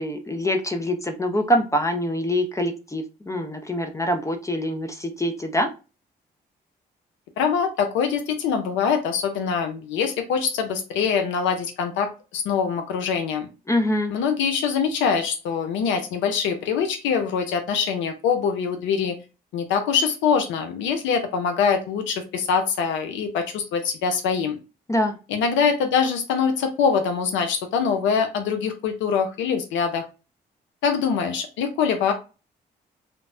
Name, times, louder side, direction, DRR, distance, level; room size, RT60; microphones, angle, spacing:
voice 1, 0.0-5.7 13.7-14.1 24.9-25.2, equal, 15° left, 5 dB, 0.5 m, -24 dB
voice 2, 7.4-13.5 14.1-19.2 19.5-24.6 25.3-30.0 30.8-32.1, left 6 dB, 85° left, 6 dB, 0.4 m, -24 dB
3.2 x 2.0 x 2.4 m, 0.31 s
supercardioid pair, 50°, 19 cm